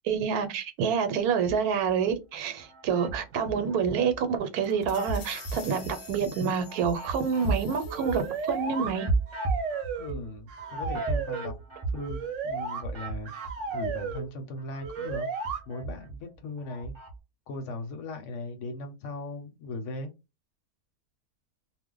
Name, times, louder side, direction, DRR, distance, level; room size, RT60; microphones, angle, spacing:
voice 1, 0.0-9.1, right 6 dB, 85° right, 1.2 m, -28 dB
sound 1, 1.4-2.1 2.6-4.2 4.6-14.3 14.6-17.2, right 3 dB, 30° right, 0.6 m, -35 dB
sound 2, 4.6-8.6, left 6 dB, 80° left, 1.1 m, -48 dB
sound 3, 7.9-8.9 9.3-10.2 10.5-11.5 12.0-12.8 13.3-14.3 14.8-15.6, right 5 dB, 60° right, 1.0 m, -34 dB
voice 2, 10.0-11.5 11.9-13.3 13.7-15.3 15.7-16.9 17.5-20.1, left 2 dB, 65° left, 0.9 m, -38 dB
2.5 x 2.1 x 3.7 m
omnidirectional pair, 1.5 m